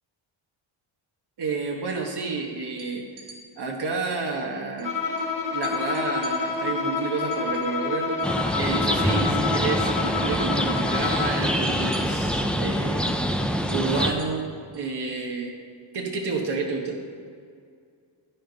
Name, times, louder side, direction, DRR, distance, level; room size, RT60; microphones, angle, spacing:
voice 1, 1.4-3.0 3.6-5.0 5.5-8.1 8.6-13.2 13.7-14.5 14.7-15.5 15.9-17.0, right 4 dB, 55° right, 0 dB, 1.2 m, -30 dB
sound 1, 2.7-3.4 4.8-4.9 5.2-5.3 5.6-8.4 8.7-9.9 10.1-10.5 10.8-14.9, right 4 dB, 75° right, 2.5 m, -50 dB
Bowed string instrument, 4.8-11.5, left 5 dB, 40° left, 1.6 m, -28 dB
sound 2, 8.2-14.1, equal, ahead, 0.5 m, -25 dB
11.5 x 10.0 x 3.9 m, 2.2 s
wide cardioid pair, 140°, 48 cm